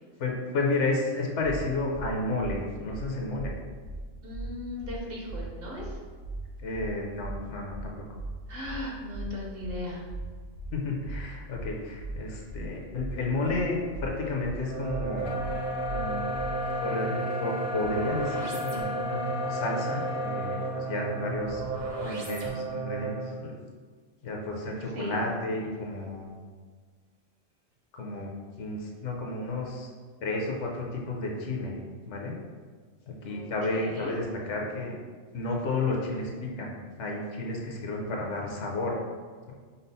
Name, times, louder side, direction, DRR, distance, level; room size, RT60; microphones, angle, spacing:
voice 1, 0.2-3.5 6.6-8.0 10.7-15.4 15.9-16.3 16.8-21.6 22.0-23.5 24.2-26.3 27.9-28.3 28.6-29.9 30.2-31.8 32.0-32.4 33.1-34.9 35.3-36.7 37.0-39.0, left 2 dB, 75° left, -1 dB, 1.1 m, -32 dB
sound 1, 1.4-1.6 1.9-2.0 2.4-2.5 2.8-3.0 3.3-3.5 3.8-4.0 4.3-4.4 4.8-4.9 5.2-5.4 5.7-5.9 6.2-6.4 6.7-6.8 7.2-7.3 7.6-7.8 8.1-8.3 8.6-8.8 9.1-9.2 9.6-9.7 10.0-10.2 10.5-10.7 11.0-11.2 11.5-11.6 12.0-12.1 12.4-12.6 12.9-13.1 13.4-13.6 13.9-14.0 14.4-14.5 14.8-15.0 15.3-15.5 15.8-16.0 16.3-16.4, right 2 dB, 85° right, 1.2 m, -39 dB
voice 2, 4.2-6.0 8.5-10.0 24.9-25.2 33.3-34.1, left 1 dB, 55° right, -2 dB, 0.9 m, -37 dB
sound 2, 14.6-23.4, right 5 dB, 40° right, 0.6 m, -34 dB
sound 3, 15.2-20.8, left 4 dB, 60° left, 0.7 m, -35 dB
5.5 x 2.0 x 4.0 m, 1.6 s
omnidirectional pair, 1.2 m